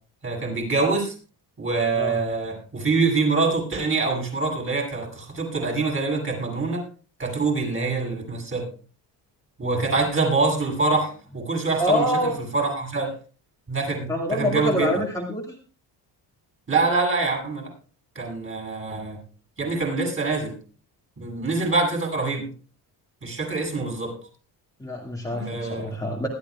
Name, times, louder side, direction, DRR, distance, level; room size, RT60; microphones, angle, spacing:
voice 1, 0.2-1.1 1.6-6.8 7.2-8.7 9.6-12.1 12.5-13.1 13.7-14.9 16.7-17.7 18.1-19.2 19.6-20.5 21.2-22.5 23.2-24.1 25.3-25.9, right 3 dB, 30° right, 1 dB, 8.0 m, -25 dB
voice 2, 11.8-12.4 14.1-15.4 24.8-26.3, equal, 10° left, -2 dB, 2.3 m, -25 dB
20.5 x 13.0 x 2.5 m, 0.37 s
cardioid pair, 115°, 41 cm